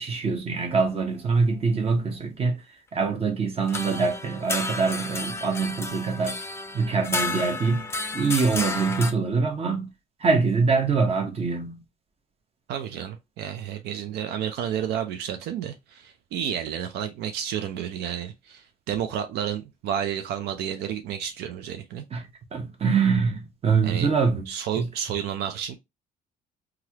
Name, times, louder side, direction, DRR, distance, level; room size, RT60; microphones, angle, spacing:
voice 1, 0.0-2.6 2.9-6.4 6.7-7.9 8.1-9.9 10.2-11.8 22.1-22.3 22.5-24.5 24.8-24.9, right 4 dB, 35° right, 0.9 m, -24 dB
sound 1, 3.7-9.1, left 3 dB, 15° left, 0.5 m, -32 dB
voice 2, 12.7-22.1 23.8-24.1 24.5-25.8, right 9 dB, 80° right, 0.4 m, -31 dB
3.1 x 2.4 x 2.8 m
cardioid pair, 110°, 17 cm